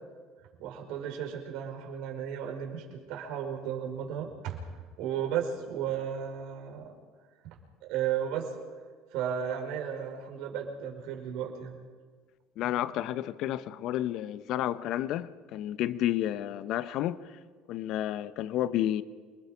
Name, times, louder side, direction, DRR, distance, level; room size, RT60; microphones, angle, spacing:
voice 1, 0.6-4.6 5.0-6.9 7.8-8.5 9.1-11.7, right 9 dB, 70° right, 2 dB, 4.9 m, -34 dB
voice 2, 12.6-17.4 17.7-19.0, left 12 dB, 65° left, 14 dB, 0.8 m, -31 dB
28.5 x 20.5 x 5.1 m, 1.5 s
supercardioid pair, 80°, 0 cm